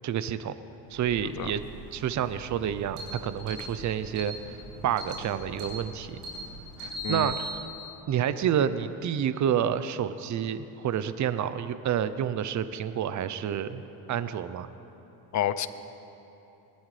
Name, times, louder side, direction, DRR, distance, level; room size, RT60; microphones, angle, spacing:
voice 1, 0.0-0.5 0.9-1.6 1.9-4.3 4.8-6.2 6.8-7.4 8.1-14.7, right 9 dB, 40° right, 13 dB, 0.7 m, -29 dB
sound 1, 0.9-7.5, right 1 dB, 80° right, 3.2 m, -40 dB
voice 2, 15.3-15.7, left 11 dB, 40° left, 14 dB, 0.6 m, -29 dB
21.5 x 11.5 x 3.3 m, 3.0 s
supercardioid pair, 85°, 43 cm